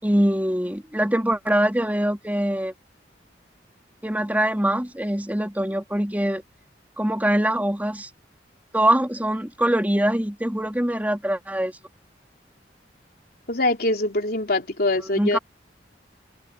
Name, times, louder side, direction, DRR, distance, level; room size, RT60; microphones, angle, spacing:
voice 1, 0.0-2.7 4.0-6.4 7.0-8.1 8.7-11.7 15.1-15.4, right 1 dB, 10° right, 3.5 m, -23 dB
voice 2, 13.5-15.4, left 2 dB, 60° left, 3.9 m, -23 dB
head